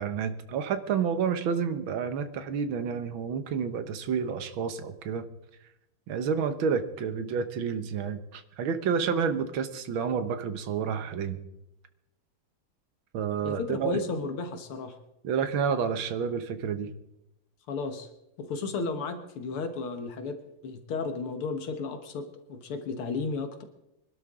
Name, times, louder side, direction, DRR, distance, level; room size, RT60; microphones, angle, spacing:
voice 1, 0.0-5.3 6.1-11.4 13.1-14.0 15.2-16.9, right 6 dB, 70° right, 10 dB, 1.8 m, -29 dB
voice 2, 13.4-15.0 17.7-18.1 18.4-20.4 20.6-23.6, left 4 dB, 80° left, 7 dB, 2.1 m, -33 dB
24.5 x 12.0 x 3.7 m, 0.90 s
omnidirectional pair, 2.4 m